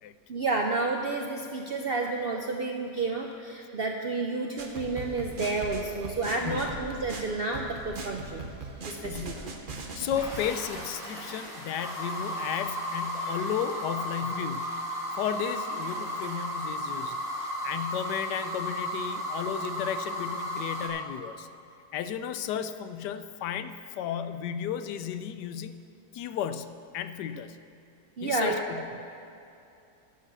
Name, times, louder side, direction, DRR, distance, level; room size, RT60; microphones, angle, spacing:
voice 1, 0.3-8.5 8.9-9.5 28.2-28.6, right 3 dB, 65° right, 2 dB, 0.6 m, -30 dB
sound 1, 4.6-10.5, right 3 dB, 40° right, 0.8 m, -40 dB
voice 2, 9.0-14.8 15.2-21.5 21.9-25.8 26.1-27.6 28.2-29.0, left 8 dB, 90° left, 11 dB, 1.2 m, -34 dB
sound 2, 10.1-20.9, equal, ahead, 2.3 m, -34 dB
11.5 x 6.9 x 6.7 m, 2.7 s
omnidirectional pair, 1.8 m